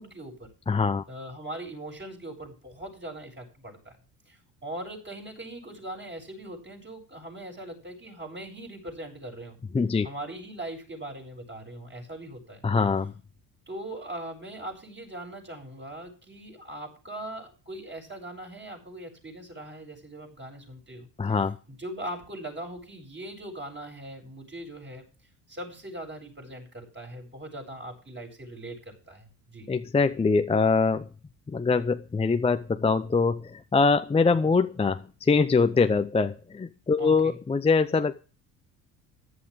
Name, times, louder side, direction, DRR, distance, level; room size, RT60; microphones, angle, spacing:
voice 1, 0.0-0.5 1.1-4.0 4.3-9.6 10.0-12.6 13.7-21.4 21.7-25.0 25.5-29.7 37.0-37.4, right 1 dB, 25° right, 2 dB, 7.7 m, -40 dB
voice 2, 0.7-1.0 9.7-10.1 12.6-13.1 21.2-21.6 29.7-31.1 31.5-38.1, left 4 dB, 15° left, 9 dB, 0.7 m, -23 dB
14.0 x 11.5 x 3.6 m, 0.35 s
hypercardioid pair, 65°, 45 cm